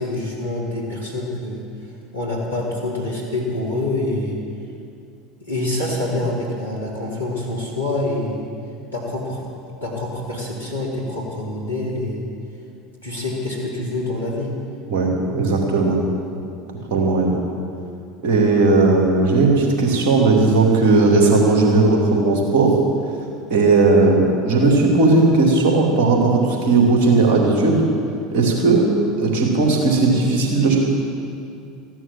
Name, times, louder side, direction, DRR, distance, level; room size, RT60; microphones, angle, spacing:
voice 1, 0.0-1.6 2.1-4.4 5.4-8.4 8.9-9.4 9.8-12.3 13.0-14.6, left 2 dB, 85° left, -5 dB, 3.0 m, -26 dB
voice 2, 14.9-16.0 16.9-17.4 18.2-22.8 23.5-27.8 28.3-28.9 29.2-30.8, right 3 dB, 55° right, 0 dB, 2.9 m, -16 dB
15.0 x 11.0 x 7.2 m, 2.4 s
figure-of-eight pair, 70°, 0 cm